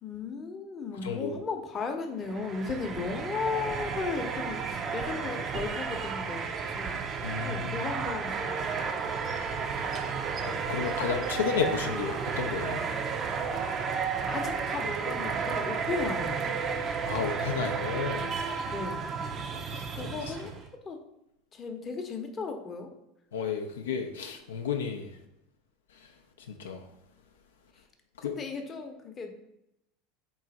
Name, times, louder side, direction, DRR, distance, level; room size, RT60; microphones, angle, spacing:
voice 1, 0.0-7.0 7.4-9.4 14.3-16.6 18.7-19.0 19.9-20.5 20.8-21.0 21.5-22.9 28.2-29.3, left 4 dB, 35° left, 4 dB, 0.7 m, -36 dB
sound 1, 2.2-20.7, right 5 dB, 40° right, 0.4 m, -32 dB
voice 2, 7.2-7.9 10.7-12.8 17.0-18.3 19.7-19.8 20.2-20.3 23.3-25.1 26.5-26.8 28.2-28.3, left 6 dB, 90° left, 4 dB, 0.4 m, -32 dB
3.8 x 2.5 x 4.0 m, 0.83 s
hypercardioid pair, 95°, 0 cm